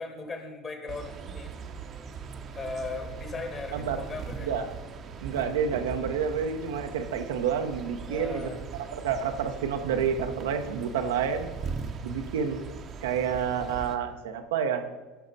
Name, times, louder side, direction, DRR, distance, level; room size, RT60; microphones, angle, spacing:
voice 1, 0.0-1.5 2.5-4.5 8.1-8.6, left 3 dB, 35° left, 5 dB, 2.1 m, -37 dB
sound 1, 0.9-14.0, right 6 dB, 40° right, 1.0 m, -40 dB
voice 2, 5.2-11.5 12.0-12.6 13.0-14.9, right 7 dB, 80° right, 5 dB, 0.9 m, -29 dB
15.0 x 6.1 x 4.1 m, 1.2 s
hypercardioid pair, 80°, 0 cm